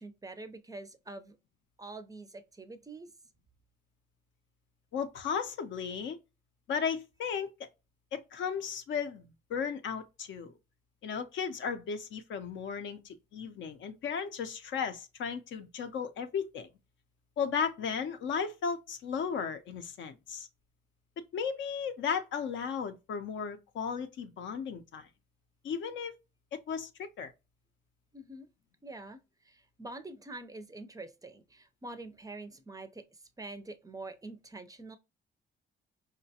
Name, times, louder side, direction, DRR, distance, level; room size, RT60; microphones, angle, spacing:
voice 1, 0.0-1.4 1.8-3.1 28.1-28.5 28.8-29.2 29.4-35.0, right 2 dB, 20° right, 0.4 m, -45 dB
voice 2, 4.9-6.2 6.7-7.7 8.1-10.5 11.0-16.7 17.4-20.5 21.3-25.1 25.6-26.1 26.5-27.3, left 6 dB, 70° left, 0.6 m, -35 dB
4.8 x 2.1 x 2.7 m
cardioid pair, 90°, 20 cm